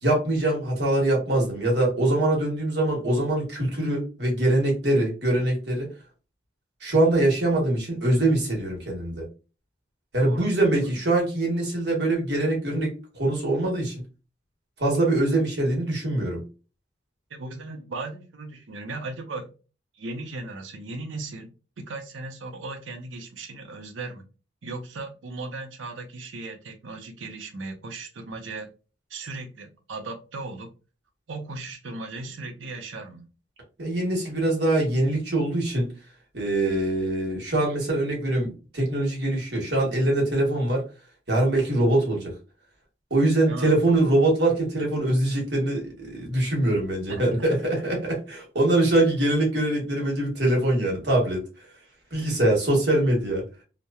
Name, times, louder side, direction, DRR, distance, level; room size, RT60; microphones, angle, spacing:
voice 1, 0.0-5.9 6.8-9.3 10.1-13.9 14.8-16.4 33.8-35.9 36.3-40.8 41.3-42.3 43.1-51.4 52.1-53.4, right 1 dB, 60° right, -1 dB, 1.1 m, -23 dB
voice 2, 17.3-19.5 20.0-21.5 21.8-24.2 24.6-28.7 29.1-30.7 31.3-33.3 43.5-43.8 47.1-47.2, right 3 dB, 85° right, 5 dB, 0.6 m, -37 dB
2.9 x 2.1 x 2.3 m, 0.33 s
head